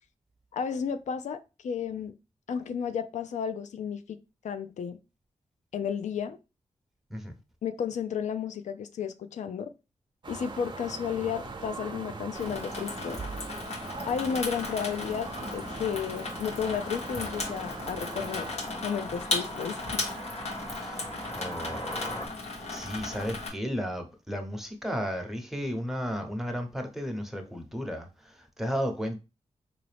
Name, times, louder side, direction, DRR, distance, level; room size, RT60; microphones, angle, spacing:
voice 1, 0.5-2.1 2.5-4.2 4.4-5.0 5.7-6.4 7.6-9.7 10.3-13.2 14.0-18.5 18.8-20.0, left 7 dB, 90° left, 0.4 m, -33 dB
sound 1, 10.2-18.5, right 4 dB, 40° right, 0.6 m, -41 dB
Water tap faucet / Sink (filling or washing), 12.3-23.5, left 2 dB, 65° left, 1.2 m, -36 dB
sound 2, 14.1-22.3, equal, 50° left, 1.5 m, -42 dB
voice 2, 20.7-21.0 21.4-29.2, equal, 5° right, 0.9 m, -34 dB
3.8 x 2.8 x 3.3 m
cardioid pair, 65°, 12 cm